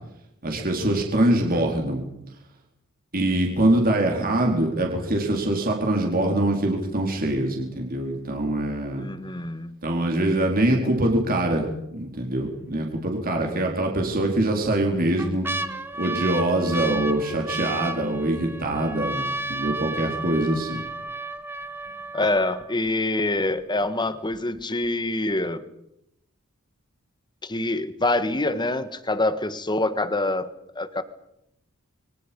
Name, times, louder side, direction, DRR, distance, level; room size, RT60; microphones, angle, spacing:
voice 1, 0.4-2.0 3.1-9.1 9.8-11.7 11.9-15.5 16.0-20.8, right 1 dB, 45° right, 1 dB, 4.4 m, -24 dB
voice 2, 9.0-9.7 22.1-25.6 27.4-30.5 30.7-31.0, left 2 dB, 20° left, 11 dB, 1.7 m, -25 dB
sound 1, 12.0-12.5 12.9-13.0 14.0-14.5 14.9-22.9 23.6-23.7 23.9-24.4 24.8-24.9, right 2 dB, 10° right, 1.2 m, -33 dB
29.5 x 23.5 x 5.5 m, 0.82 s
head